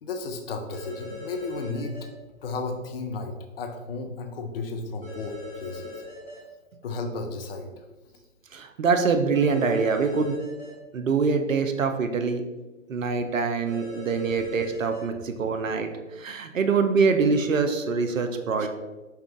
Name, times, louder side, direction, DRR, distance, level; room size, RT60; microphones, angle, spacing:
voice 1, 0.0-2.0 2.4-5.9 6.8-7.7, left 3 dB, 45° left, 4 dB, 0.6 m, -33 dB
sound 1, 0.7-2.0 5.0-6.4 9.3-10.7 13.7-15.0, left 2 dB, 5° left, 0.4 m, -40 dB
voice 2, 8.5-10.4 10.9-12.4 12.9-15.9 16.2-18.7, right 5 dB, 70° right, 7 dB, 0.7 m, -24 dB
5.7 x 2.3 x 3.7 m, 1.2 s
figure-of-eight pair, 125°, 40 cm